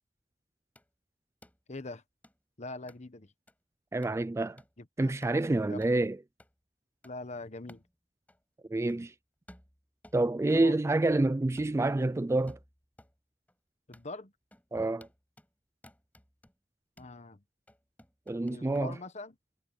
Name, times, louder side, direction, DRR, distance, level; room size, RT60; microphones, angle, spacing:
sound 1, 0.8-0.9 1.4-1.6 2.2-2.4 2.9-3.0 3.5-3.6 4.0-4.2 4.6-4.7 5.2-5.4 5.8-6.0 6.4-6.5 7.0-7.2 7.7-7.9 8.3-8.4 8.9-9.1 9.5-10.7 11.0-11.3 11.6-13.2 13.5-13.6 13.9-14.1 14.5-14.7 15.0-15.5 15.8-16.5 17.0-17.2 17.7-18.9, left 1 dB, 10° left, 5.5 m, -57 dB
voice 1, 1.7-2.0 2.6-3.3 4.8-5.1 5.7-5.9 7.0-7.8 10.5-10.7 13.9-14.3 17.0-17.4 18.5-19.3, left 2 dB, 40° left, 1.2 m, -42 dB
voice 2, 3.9-4.6 5.0-6.2 8.7-9.1 10.1-12.6 14.7-15.1 18.3-19.0, right 2 dB, 15° right, 0.3 m, -28 dB
head